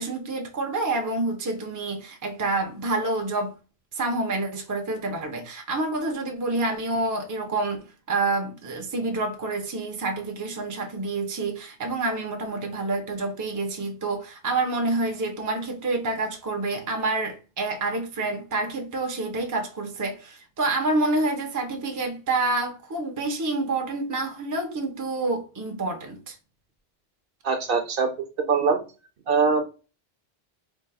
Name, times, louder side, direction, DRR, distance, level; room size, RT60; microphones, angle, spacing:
voice 1, 0.0-3.5 3.9-26.3, right 2 dB, 25° right, 0.4 m, -28 dB
voice 2, 27.4-28.1 28.5-28.8 29.3-29.6, right 5 dB, 65° right, 0.8 m, -22 dB
3.8 x 2.8 x 2.3 m
omnidirectional pair, 1.1 m